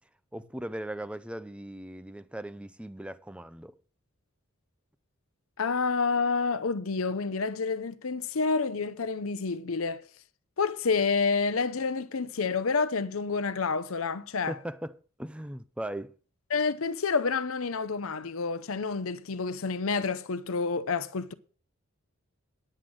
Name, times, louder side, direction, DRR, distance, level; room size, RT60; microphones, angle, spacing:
voice 1, 0.3-3.7 14.5-16.1, right 1 dB, 5° right, 0.5 m, -38 dB
voice 2, 5.6-10.1 10.6-14.6 16.5-21.3, left 4 dB, 75° left, 0.7 m, -29 dB
10.5 x 7.7 x 6.3 m
head